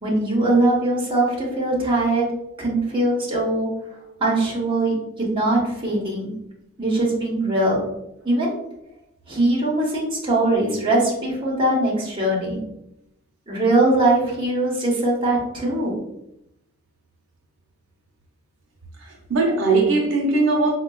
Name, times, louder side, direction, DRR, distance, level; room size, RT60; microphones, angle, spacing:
voice 1, 0.0-2.3 2.6-3.7 4.2-6.3 6.8-7.8 8.2-8.5 9.3-12.6 13.5-16.0, right 2 dB, 25° right, 1.0 m, -21 dB
voice 2, 19.0-20.7, right 3 dB, 75° right, 0.6 m, -20 dB
4.3 x 2.3 x 2.3 m
head